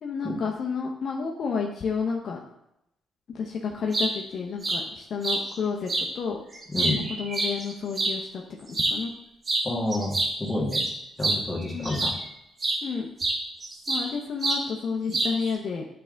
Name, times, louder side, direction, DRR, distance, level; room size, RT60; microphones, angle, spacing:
voice 1, 0.0-2.4 3.3-6.4 7.1-8.4 8.7-9.1 11.7-11.9 12.8-13.1 13.9-15.9, left 5 dB, 60° left, 0 dB, 0.7 m, -30 dB
sound 1, 3.7-4.1 4.6-4.8 5.2-5.4 5.9-6.1 6.5-8.1 8.7-9.0 9.4-9.7 9.9-12.2 12.6-12.8 13.2-14.1 14.4-14.6 15.1-15.5, right 2 dB, 35° right, 1.5 m, -27 dB
voice 2, 6.7-7.1 9.6-10.8 11.2-12.1, left 1 dB, 20° left, -3 dB, 1.9 m, -29 dB
8.9 x 3.4 x 3.8 m, 0.82 s
cardioid pair, 90°, 0 cm